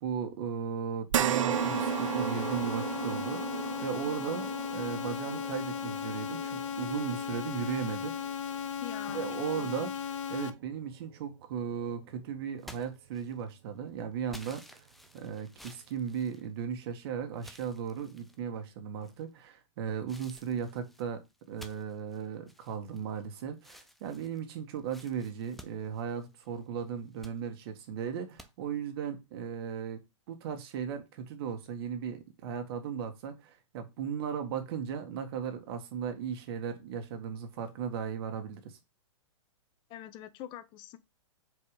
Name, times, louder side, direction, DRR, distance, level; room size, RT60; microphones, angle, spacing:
voice 1, 0.0-3.4 3.8-8.2 9.1-9.9 10.3-14.8 15.1-30.0 30.3-38.8, right 7 dB, 50° right, 1.6 m, -36 dB
sound 1, 1.1-9.7 10.2-10.3 11.7-11.8, right 10 dB, 75° right, 0.7 m, -35 dB
sound 2, 1.5-10.5, left 8 dB, 70° left, 0.9 m, -36 dB
voice 2, 8.8-10.0 39.9-41.0, left 12 dB, 30° left, 0.8 m, -45 dB
sound 3, 12.6-13.6 14.3-16.9 17.4-18.4 19.0-19.5 20.1-23.2 23.6-26.6 27.0-27.4 28.4-28.5, equal, ahead, 0.5 m, -53 dB
4.9 x 4.7 x 5.0 m
hypercardioid pair, 140°, 17 cm